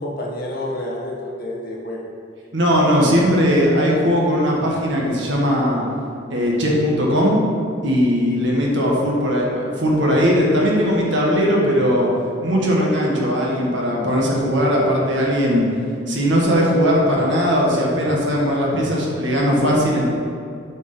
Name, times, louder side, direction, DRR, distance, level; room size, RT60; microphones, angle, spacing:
voice 1, 0.0-2.1, left 1 dB, 50° left, -2 dB, 1.3 m, -29 dB
voice 2, 2.5-5.8 6.3-7.4 7.8-12.1 12.4-15.6 16.1-20.0, equal, 65° right, -3 dB, 1.7 m, -18 dB
8.2 x 5.2 x 5.1 m, 2.4 s
head